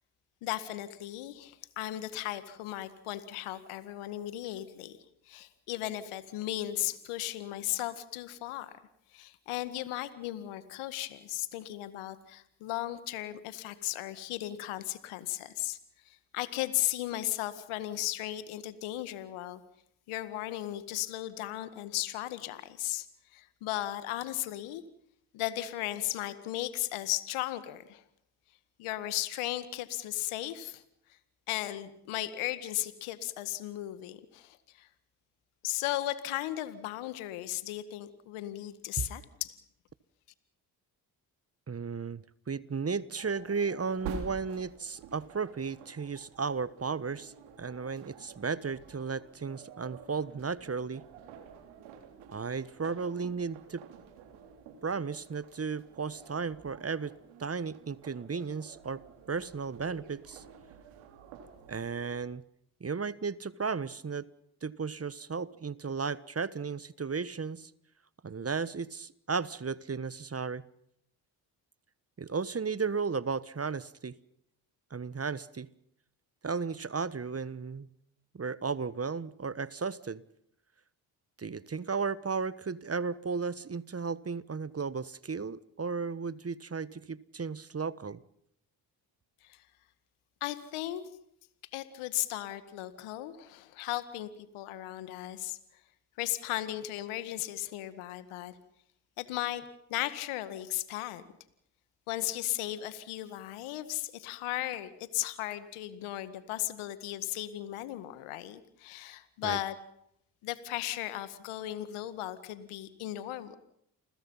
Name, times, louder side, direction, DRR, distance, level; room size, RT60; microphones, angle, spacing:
voice 1, 0.4-5.0 5.3-8.7 9.1-15.8 16.1-19.6 20.1-23.1 23.3-24.8 25.3-28.0 28.8-30.8 31.5-34.9 35.6-39.6 89.4-89.6 90.4-91.0 91.7-95.6 96.2-98.6 99.2-101.2 102.1-109.8 110.4-113.6, left 15 dB, 80° left, 13 dB, 2.0 m, -36 dB
voice 2, 41.7-51.0 52.3-53.8 54.8-57.1 57.4-59.0 59.3-60.4 61.7-62.4 62.8-64.3 64.6-67.7 68.2-70.6 72.2-74.1 74.9-75.7 76.4-77.9 78.3-80.2 81.4-88.2 109.4-109.6, right 5 dB, 30° right, 18 dB, 1.3 m, -34 dB
sound 1, 43.2-62.2, right 6 dB, 85° right, 3.6 m, -50 dB
29.5 x 21.0 x 5.7 m, 0.74 s
hypercardioid pair, 45°, 50 cm